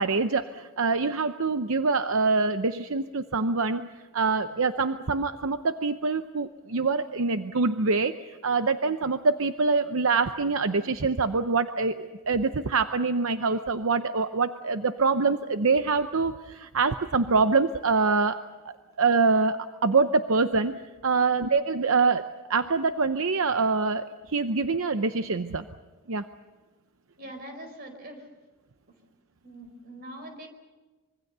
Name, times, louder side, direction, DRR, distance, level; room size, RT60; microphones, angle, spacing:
voice 1, 0.0-8.1 8.4-18.4 19.0-25.6 26.1-26.2, right 4 dB, 70° right, 9 dB, 0.7 m, -25 dB
voice 2, 21.1-21.5 27.2-28.3 29.4-30.5, right 1 dB, 45° right, 6 dB, 4.5 m, -43 dB
25.5 x 23.0 x 6.8 m, 1.3 s
head